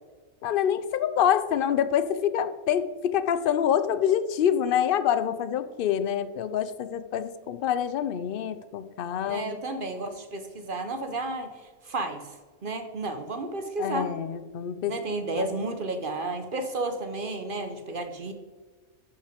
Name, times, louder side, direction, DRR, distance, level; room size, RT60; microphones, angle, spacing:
voice 1, 0.4-9.6 13.8-14.9 15.4-15.7, left 9 dB, 65° left, 12 dB, 0.5 m, -26 dB
voice 2, 9.2-11.5 11.8-12.4 12.6-14.1 14.9-18.3, right 2 dB, 45° right, 7 dB, 0.8 m, -32 dB
11.5 x 5.5 x 5.1 m, 1.4 s
omnidirectional pair, 1.5 m